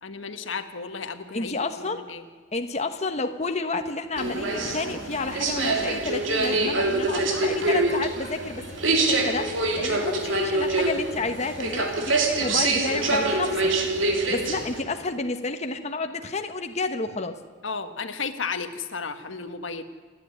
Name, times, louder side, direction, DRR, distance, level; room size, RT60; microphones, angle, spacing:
voice 1, 0.0-1.5 1.8-2.2 17.6-19.8, left 5 dB, 85° left, 8 dB, 1.6 m, -33 dB
voice 2, 1.3-2.0 2.5-13.8 14.3-17.4, left 3 dB, 35° left, 6 dB, 1.2 m, -30 dB
sound 1, 4.2-14.8, right 2 dB, 85° right, 3.3 m, -25 dB
29.0 x 10.5 x 9.7 m, 1.5 s
head